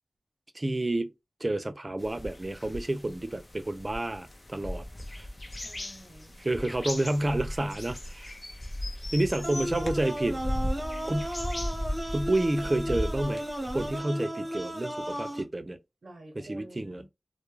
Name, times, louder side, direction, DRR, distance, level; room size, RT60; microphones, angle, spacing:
voice 1, 0.5-1.1 1.4-5.3 6.4-8.4 9.1-10.4 11.0-11.3 12.1-13.4 13.7-15.8 16.4-17.0, right 1 dB, 35° right, 0.4 m, -30 dB
sound 1, 2.0-14.0, left 1 dB, 35° left, 0.5 m, -37 dB
voice 2, 5.5-6.4 9.3-9.7 16.0-17.1, right 1 dB, 85° right, 0.5 m, -49 dB
sound 2, 9.4-15.4, equal, 20° right, 0.8 m, -35 dB
2.2 x 2.0 x 3.0 m
wide cardioid pair, 65°, 0 cm